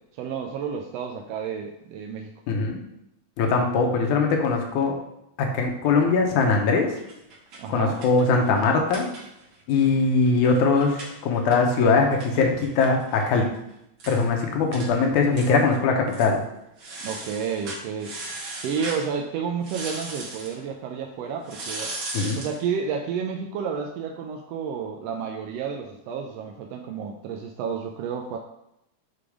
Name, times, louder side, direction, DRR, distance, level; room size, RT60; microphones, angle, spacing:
voice 1, 0.2-2.3 7.6-8.0 17.0-18.1 18.6-21.9 22.4-28.4, right 6 dB, 80° right, 2 dB, 1.5 m, -31 dB
voice 2, 2.5-2.8 3.4-5.0 5.4-6.9 7.7-9.1 9.7-13.5 14.1-16.4 22.1-22.4, left 4 dB, 85° left, 2 dB, 2.5 m, -21 dB
sound 1, 7.0-9.6 9.9-10.0 10.3-13.4 13.7-13.8 14.0-14.2 14.7-14.9 15.3-15.8 16.1-16.3 16.8-19.1 19.6-20.6 21.4-22.6, right 2 dB, 50° right, 2.0 m, -37 dB
6.8 x 3.8 x 4.8 m, 0.81 s
omnidirectional pair, 3.4 m